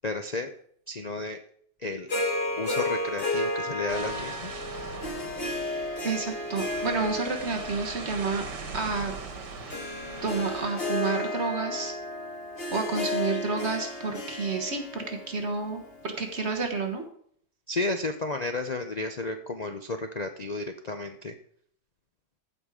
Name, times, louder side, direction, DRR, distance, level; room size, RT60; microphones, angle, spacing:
voice 1, 0.0-0.5 0.9-1.4 1.8-2.1 2.6-4.5 17.7-21.3, left 2 dB, 65° left, 6 dB, 0.4 m, -32 dB
Harp, 2.1-16.5, left 2 dB, 35° left, 1.8 m, -33 dB
sound 1, 3.9-10.9, right 5 dB, 90° right, 2.0 m, -41 dB
voice 2, 6.0-8.4 8.7-9.1 10.2-11.9 12.7-17.0, right 4 dB, 40° right, 5 dB, 1.6 m, -30 dB
14.5 x 5.4 x 4.9 m, 0.64 s
omnidirectional pair, 1.8 m